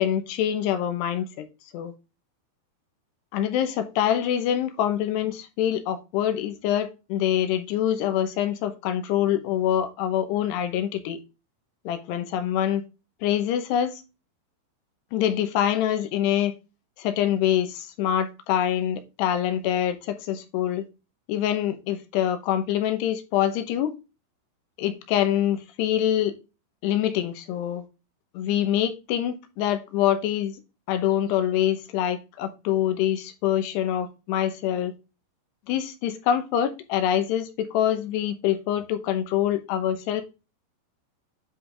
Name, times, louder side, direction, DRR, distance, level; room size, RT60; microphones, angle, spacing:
voice 1, 0.0-1.5 1.7-1.9 3.3-11.2 11.9-12.8 13.2-14.0 15.1-16.5 17.0-20.9 21.3-23.9 24.8-26.3 26.8-27.8 28.3-30.6 30.9-34.9 35.7-40.2, left 10 dB, 75° left, 3.0 m, -25 dB
10.0 x 4.1 x 3.3 m
omnidirectional pair, 5.0 m